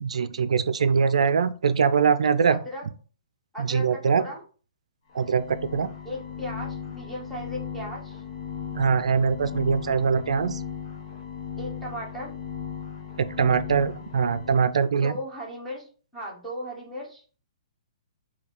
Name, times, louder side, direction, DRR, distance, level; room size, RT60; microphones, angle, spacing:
voice 1, 0.0-2.6 3.6-4.3 5.1-5.9 8.8-10.6 13.2-15.1, right 6 dB, 85° right, 0.4 m, -23 dB
voice 2, 2.5-2.8 3.5-4.4 6.0-8.2 11.6-12.3 15.0-15.9 16.1-17.2, equal, ahead, 1.3 m, -36 dB
sound 1, 5.1-14.8, left 7 dB, 55° left, 0.9 m, -37 dB
4.6 x 2.8 x 3.5 m
hypercardioid pair, 165°, 3 cm